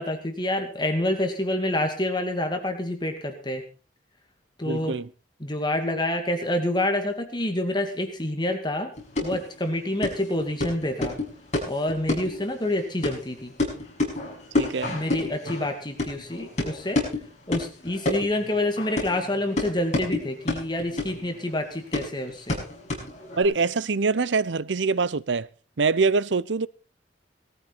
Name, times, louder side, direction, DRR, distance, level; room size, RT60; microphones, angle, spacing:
voice 1, 0.0-3.6 4.6-4.9 5.4-8.9 9.2-11.2 11.7-13.5 14.9-17.0 17.5-22.6, left 1 dB, 25° left, 2.3 m, -27 dB
voice 2, 4.6-5.1 14.6-15.0 23.4-25.5 25.8-26.7, right 4 dB, 85° right, 0.7 m, -24 dB
sound 1, 9.0-23.4, left 2 dB, 40° left, 6.3 m, -31 dB
19.0 x 14.0 x 4.1 m
head